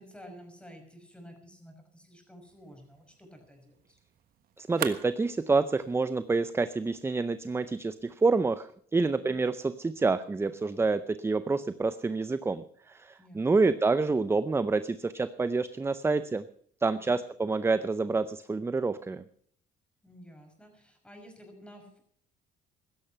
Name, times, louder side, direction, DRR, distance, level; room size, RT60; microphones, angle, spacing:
voice 1, 0.0-4.0 9.0-9.3 13.2-13.7 16.9-17.2 20.0-22.0, equal, 5° left, 4 dB, 5.8 m, -51 dB
sound 1, 2.4-8.3, right 10 dB, 65° right, 1.5 m, -45 dB
voice 2, 4.6-16.4 16.8-19.2, right 3 dB, 15° right, 14 dB, 0.5 m, -28 dB
16.0 x 13.5 x 5.6 m, 0.64 s
cardioid pair, 110°, 17 cm